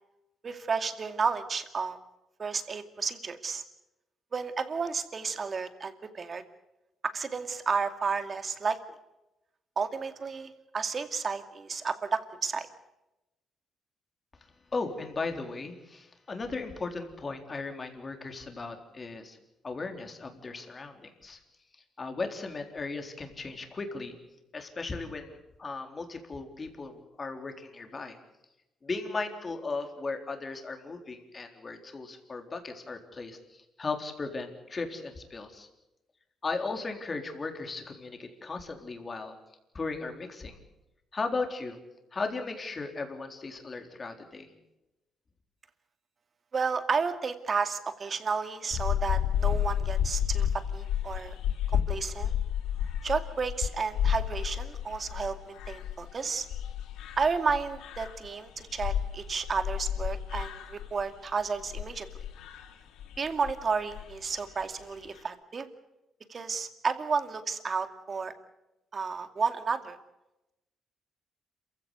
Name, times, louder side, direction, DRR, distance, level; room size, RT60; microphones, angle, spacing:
voice 1, 0.4-2.0 2.4-3.6 4.3-6.4 7.0-8.8 9.8-12.7 46.5-51.3 51.7-52.3 53.0-56.5 57.2-62.1 63.2-65.7 66.3-68.3 68.9-70.0, right 5 dB, 40° right, 9 dB, 2.3 m, -32 dB
voice 2, 14.7-19.4 19.6-21.4 22.0-24.2 24.5-28.2 28.8-35.7 36.4-39.4 39.7-40.6 41.1-41.8 42.1-44.5, left 3 dB, 35° left, 5 dB, 3.9 m, -36 dB
sound 1, 48.7-61.3 61.6-62.7 63.0-63.5 63.9-64.1 64.4-64.6 64.9-65.2, left 9 dB, 90° left, 2.3 m, -31 dB
27.5 x 15.5 x 8.3 m, 0.96 s
cardioid pair, 90°, 0 cm